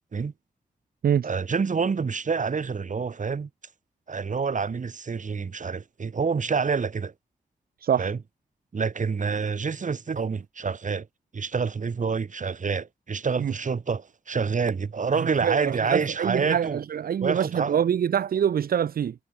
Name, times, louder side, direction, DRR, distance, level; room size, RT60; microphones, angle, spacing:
voice 1, 1.2-3.5 4.1-7.1 8.0-8.2 8.7-11.1 11.3-16.8 17.2-17.8, right 5 dB, 55° right, 2.4 m, -27 dB
voice 2, 15.4-19.1, right 8 dB, 75° right, 0.7 m, -25 dB
cardioid pair, 60°, 15 cm